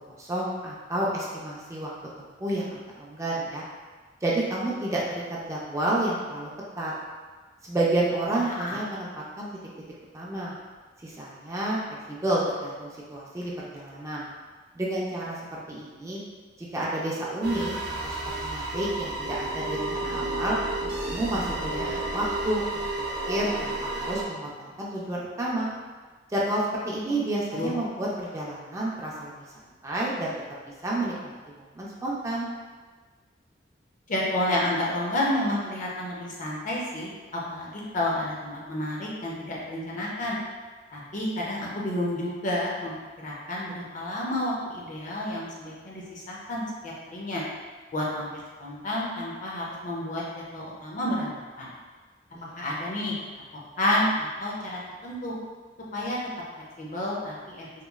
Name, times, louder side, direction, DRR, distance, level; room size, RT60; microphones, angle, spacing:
voice 1, 0.2-1.9 2.2-3.6 4.2-6.5 6.8-6.9 7.6-9.5 10.1-10.5 11.0-11.8 12.1-14.3 14.7-16.2 16.7-20.6 21.1-22.6 23.0-25.7 26.3-30.3 30.8-31.3 31.7-32.5 52.3-52.5, right 1 dB, 15° right, -5 dB, 0.4 m, -30 dB
voice 2, 8.3-8.7 27.6-27.7 34.1-40.4 40.9-42.9 43.2-47.4 47.9-50.2 50.5-51.7 52.6-53.1 53.8-55.4 55.9-56.2 56.8-57.7, left 1 dB, 45° left, -4 dB, 0.6 m, -30 dB
sound 1, 17.4-24.2, right 2 dB, 65° right, 0.6 m, -31 dB
2.9 x 2.3 x 2.3 m, 1.4 s
head